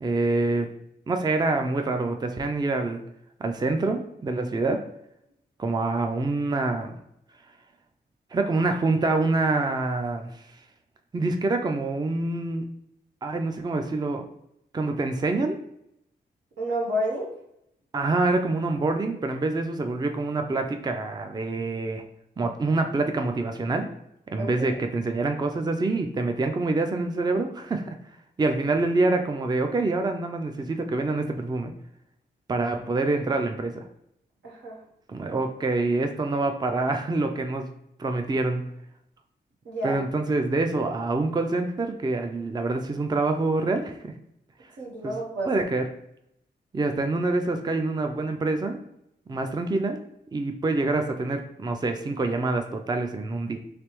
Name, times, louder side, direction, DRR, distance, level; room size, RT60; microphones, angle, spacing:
voice 1, 0.0-0.7 1.1-3.0 3.4-4.8 5.6-6.9 8.3-10.4 11.1-12.6 13.2-14.2 14.7-15.6 17.9-22.0 22.4-23.9 24.3-28.0 28.4-31.7 32.5-33.8 35.1-37.7 38.0-38.6 39.8-44.1 45.0-45.1 45.5-45.8 46.7-48.8 49.3-50.0 50.3-53.6, right 3 dB, 25° right, 5 dB, 0.4 m, -26 dB
voice 2, 16.6-17.3 24.4-24.8 34.4-34.8 39.6-40.0 44.8-45.6, equal, 85° right, -3 dB, 1.0 m, -30 dB
3.3 x 3.3 x 3.0 m, 0.77 s
cardioid pair, 50°, 18 cm